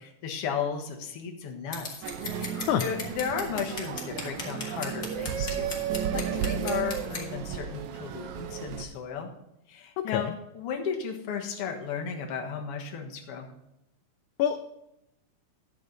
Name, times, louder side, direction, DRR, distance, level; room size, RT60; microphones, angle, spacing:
voice 1, 0.0-5.8 6.1-9.3 9.7-10.3 10.5-13.5, left 6 dB, 55° left, 2 dB, 2.1 m, -35 dB
Scissors, 1.7-7.2, left 4 dB, 35° left, 1.5 m, -38 dB
sound 1, 2.0-8.9, right 8 dB, 70° right, 2.1 m, -33 dB
voice 2, 2.5-2.9 10.0-10.3 14.4-14.6, left 10 dB, 80° left, 8 dB, 1.9 m, -27 dB
12.0 x 8.2 x 3.9 m, 0.86 s
omnidirectional pair, 3.7 m